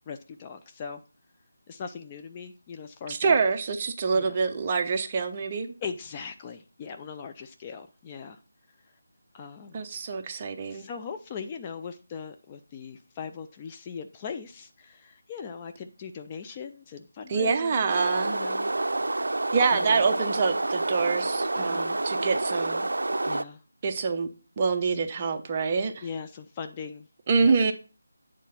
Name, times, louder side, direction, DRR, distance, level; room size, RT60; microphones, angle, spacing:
voice 1, 0.1-1.0 1.7-3.4 4.1-4.4 5.8-8.4 9.3-9.8 10.7-17.9 18.3-18.7 19.7-20.1 21.6-21.9 23.3-23.6 26.0-27.1 27.4-27.5, left 6 dB, 20° left, 0.4 m, -39 dB
voice 2, 3.1-5.7 9.7-10.8 17.3-18.4 19.5-22.9 23.8-24.3 24.6-26.0 27.3-27.7, right 5 dB, 25° right, 0.7 m, -26 dB
sound 1, 17.9-23.4, right 2 dB, 80° right, 0.4 m, -28 dB
8.3 x 3.7 x 5.7 m
figure-of-eight pair, 165°, 0 cm